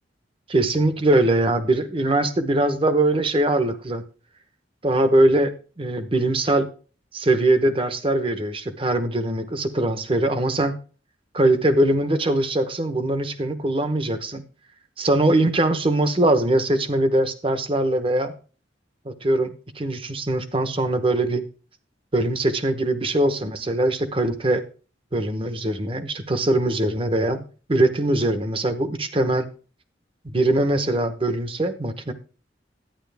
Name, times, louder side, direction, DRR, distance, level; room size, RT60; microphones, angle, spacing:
voice 1, 0.5-4.0 4.8-6.7 7.1-10.8 11.3-14.4 15.0-18.3 19.0-21.4 22.1-24.6 25.1-27.4 27.7-29.5 30.3-32.1, right 1 dB, 30° right, 10 dB, 1.0 m, -22 dB
11.5 x 9.7 x 3.5 m, 0.37 s
head